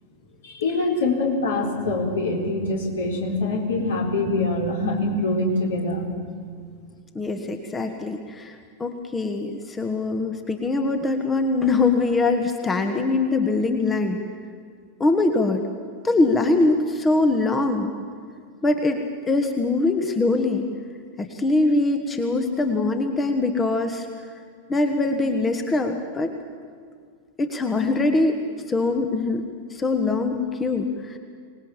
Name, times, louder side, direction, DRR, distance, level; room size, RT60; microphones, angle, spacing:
voice 1, 0.4-6.1, left 2 dB, 65° left, 0 dB, 4.3 m, -24 dB
voice 2, 7.1-14.2 15.0-15.6 16.0-17.9 18.6-20.7 21.2-24.1 24.7-26.3 27.4-28.4 28.7-29.4 29.7-31.2, left 3 dB, 15° left, 6 dB, 1.5 m, -23 dB
25.0 x 19.5 x 7.5 m, 2.1 s
figure-of-eight pair, 90°, 0 cm